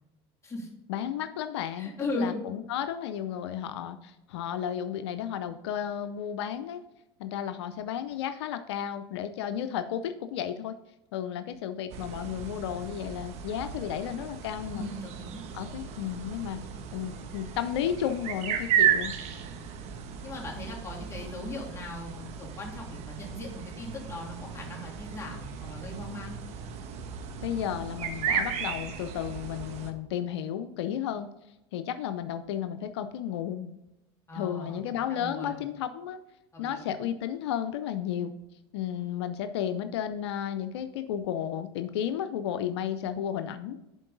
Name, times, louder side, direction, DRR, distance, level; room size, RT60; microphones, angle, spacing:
voice 1, 0.9-6.8 7.2-10.8 11.1-14.9 15.5-16.6 16.9-19.1 27.4-31.3 31.7-33.7 34.3-36.2 36.6-38.3 38.7-43.8, left 9 dB, 85° left, 9 dB, 0.6 m, -33 dB
voice 2, 1.7-2.4 14.7-15.4 19.8-26.4 34.3-34.8 35.1-35.6 36.5-36.9, left 2 dB, 20° left, -2 dB, 2.9 m, -38 dB
sound 1, 11.9-29.9, right 8 dB, 55° right, 1.2 m, -34 dB
11.0 x 4.5 x 3.9 m, 0.92 s
supercardioid pair, 100°, 14 cm